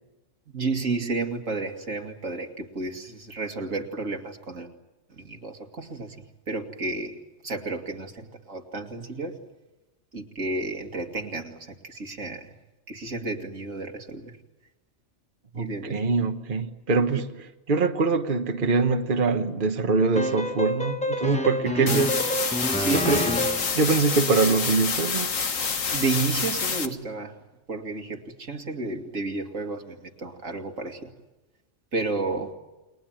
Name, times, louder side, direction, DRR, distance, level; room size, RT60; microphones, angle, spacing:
voice 1, 0.5-4.7 5.1-9.4 10.1-12.5 12.9-14.4 15.5-16.1 17.1-17.3 21.8-22.1 22.8-23.5 25.9-27.4 27.7-31.1 31.9-32.5, right 3 dB, 80° right, 2.6 m, -32 dB
voice 2, 15.5-17.2 17.7-22.1 22.9-23.2 23.7-25.4, right 4 dB, 40° right, 1.3 m, -23 dB
sound 1, 20.1-23.8, left 1 dB, 5° left, 1.3 m, -28 dB
sound 2, 21.9-26.9, left 5 dB, 85° left, 1.9 m, -28 dB
29.5 x 21.5 x 9.0 m
omnidirectional pair, 1.3 m